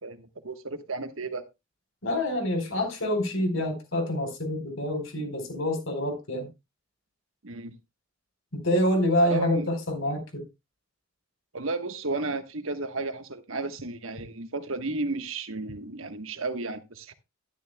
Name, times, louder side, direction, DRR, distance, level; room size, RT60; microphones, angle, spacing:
voice 1, 0.0-1.5 7.4-7.8 9.2-9.7 11.5-17.1, right 3 dB, 75° right, 1.3 m, -33 dB
voice 2, 2.0-6.5 8.5-10.4, left 1 dB, 70° left, 4.3 m, -27 dB
13.0 x 11.5 x 2.3 m
head